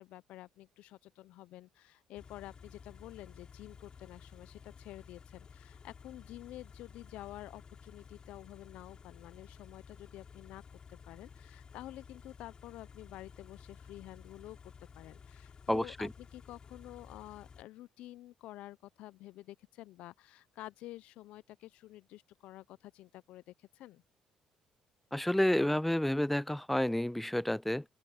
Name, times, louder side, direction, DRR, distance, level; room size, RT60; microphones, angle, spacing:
voice 1, 0.0-10.6 10.9-24.0, left 15 dB, 75° left, 0.6 m, -50 dB
Car / Idling, 2.2-17.6, left 6 dB, 45° left, 4.0 m, -54 dB
voice 2, 15.7-16.1 25.1-27.8, left 1 dB, 5° left, 0.4 m, -30 dB
open air
hypercardioid pair, 60°, 2 cm